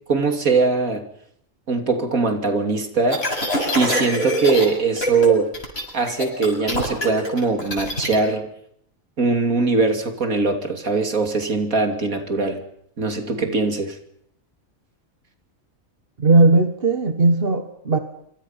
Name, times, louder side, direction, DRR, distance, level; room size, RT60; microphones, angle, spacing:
voice 1, 0.1-1.0 1.7-3.3 3.7-5.5 5.9-8.5 9.2-12.6 13.0-14.0, right 4 dB, 80° right, 3.3 m, -21 dB
sound 1, 3.1-4.7 5.0-5.3 5.5-8.2, equal, 45° left, 7.3 m, -24 dB
voice 2, 16.2-18.0, right 3 dB, 45° right, 1.5 m, -17 dB
26.5 x 25.5 x 5.7 m
omnidirectional pair, 1.4 m